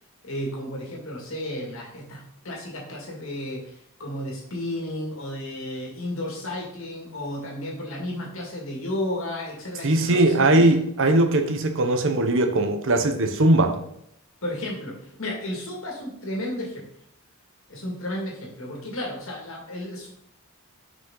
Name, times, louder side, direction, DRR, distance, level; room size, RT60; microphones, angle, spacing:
voice 1, 0.2-10.6 14.4-16.9 17.7-20.1, left 1 dB, 60° left, -2 dB, 2.1 m, -33 dB
voice 2, 9.8-13.7, right 2 dB, 60° right, 6 dB, 0.8 m, -20 dB
6.2 x 5.2 x 3.8 m, 0.73 s
head